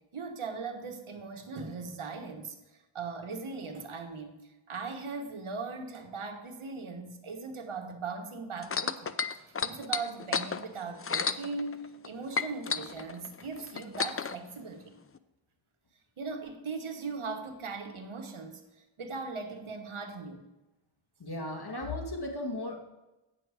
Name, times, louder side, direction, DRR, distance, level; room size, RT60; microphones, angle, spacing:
voice 1, 0.1-2.6 2.9-4.4 4.7-11.8 12.0-14.8 16.2-18.6 19.0-20.4, right 4 dB, 75° right, 5 dB, 1.4 m, -39 dB
sound 1, 8.6-12.1 12.3-14.4 15.2-15.3, left 5 dB, 30° left, 0.5 m, -32 dB
voice 2, 21.2-22.8, left 2 dB, 50° left, 1 dB, 2.1 m, -35 dB
9.3 x 6.3 x 4.9 m, 0.99 s
cardioid pair, 45°, 50 cm